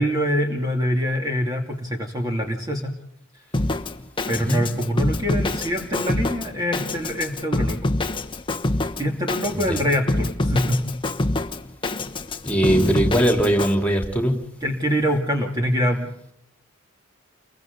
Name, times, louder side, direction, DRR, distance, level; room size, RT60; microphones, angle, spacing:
voice 1, 0.0-2.9 4.3-8.0 9.0-10.8 14.6-16.1, equal, 20° right, 1 dB, 2.6 m, -24 dB
Drum kit, 3.5-13.7, left 2 dB, 25° left, 1.1 m, -26 dB
voice 2, 4.3-4.6 9.5-9.6 12.4-14.4, right 1 dB, 5° left, 3 dB, 3.7 m, -20 dB
30.0 x 23.5 x 4.0 m, 0.75 s
head